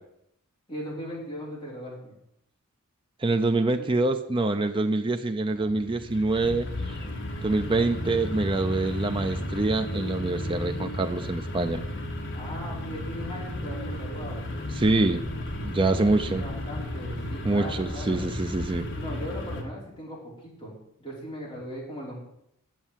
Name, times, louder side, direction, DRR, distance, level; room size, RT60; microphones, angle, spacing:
voice 1, 0.7-2.1 3.8-3.9 12.3-14.6 15.8-18.3 18.9-20.7 21.0-22.2, equal, 20° left, -6 dB, 5.2 m, -38 dB
voice 2, 3.2-6.7 7.4-11.8 14.8-15.3 15.6-16.4 17.4-18.9, right 2 dB, 25° right, 7 dB, 0.5 m, -25 dB
sound 1, 5.5-19.6, left 1 dB, 55° left, 1.8 m, -33 dB
9.2 x 7.1 x 8.9 m, 0.77 s
head